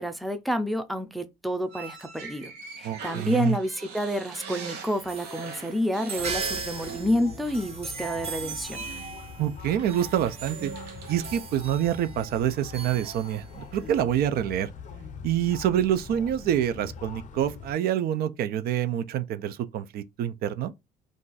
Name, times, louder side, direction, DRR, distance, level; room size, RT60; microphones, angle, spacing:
voice 1, 0.0-2.5 2.8-8.8, equal, ahead, 0.4 m, -29 dB
sound 1, 1.7-7.2 7.4-7.7 8.9-9.1 9.6-11.4, right 5 dB, 80° right, 0.9 m, -44 dB
voice 2, 2.8-3.6 9.4-10.7 11.1-14.7 15.2-20.7, right 10 dB, 65° right, 0.4 m, -26 dB
sound 2, 4.4-13.9, right 5 dB, 35° right, 0.8 m, -38 dB
sound 3, 6.2-17.7, left 6 dB, 50° left, 0.6 m, -43 dB
2.5 x 2.3 x 3.8 m
cardioid pair, 110°, 17 cm